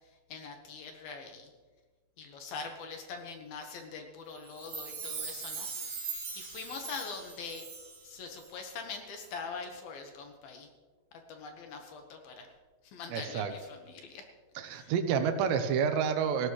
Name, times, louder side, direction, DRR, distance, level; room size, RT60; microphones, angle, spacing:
voice 1, 0.3-1.5 2.2-6.1 6.4-7.6 8.0-10.7 11.3-12.5 12.8-14.2 14.7-14.9, left 5 dB, 65° left, 4 dB, 2.9 m, -43 dB
Chime, 4.5-8.1 8.4-8.5, right 5 dB, 40° right, 3.1 m, -40 dB
voice 2, 13.1-13.5 14.6-16.5, right 7 dB, 90° right, 8 dB, 3.2 m, -29 dB
18.0 x 16.0 x 3.2 m, 1.3 s
omnidirectional pair, 5.0 m